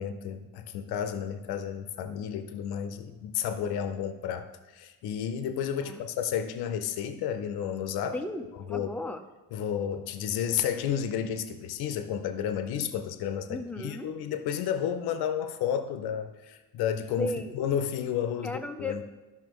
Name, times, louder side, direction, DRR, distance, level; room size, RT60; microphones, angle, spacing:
voice 1, 0.0-4.5 4.7-8.2 8.7-8.9 9.5-19.0, left 8 dB, 80° left, 8 dB, 0.7 m, -31 dB
voice 2, 8.1-9.2 13.5-14.1 17.1-17.7 18.4-19.0, left 2 dB, 5° left, 4 dB, 0.6 m, -35 dB
13.0 x 5.7 x 3.0 m, 1.2 s
cardioid pair, 120°, 37 cm